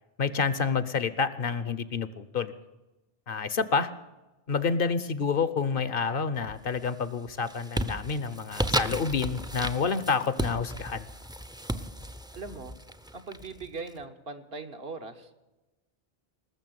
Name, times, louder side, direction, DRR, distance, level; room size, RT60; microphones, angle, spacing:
voice 1, 0.2-2.5 3.3-3.9 4.5-11.1, left 5 dB, 60° left, 15 dB, 1.0 m, -28 dB
sound 1, 6.4-6.9 7.3-13.9, equal, 5° right, 0.5 m, -34 dB
voice 2, 12.3-12.7 13.1-15.4, right 4 dB, 70° right, 6 dB, 1.6 m, -40 dB
20.0 x 7.1 x 9.2 m, 1.1 s
omnidirectional pair, 1.0 m